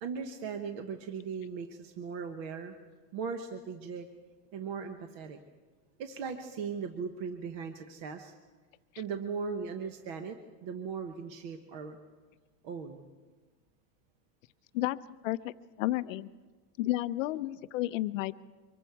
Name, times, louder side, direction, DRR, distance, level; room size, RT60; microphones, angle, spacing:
voice 1, 0.0-2.7 3.1-4.1 4.5-5.4 6.0-8.3 9.0-12.0 12.6-13.1, right 5 dB, 35° right, 6 dB, 1.0 m, -38 dB
voice 2, 15.2-16.3 16.8-18.3, left 16 dB, 55° left, 14 dB, 0.7 m, -32 dB
24.5 x 22.5 x 4.7 m, 1.4 s
supercardioid pair, 180°, 47 cm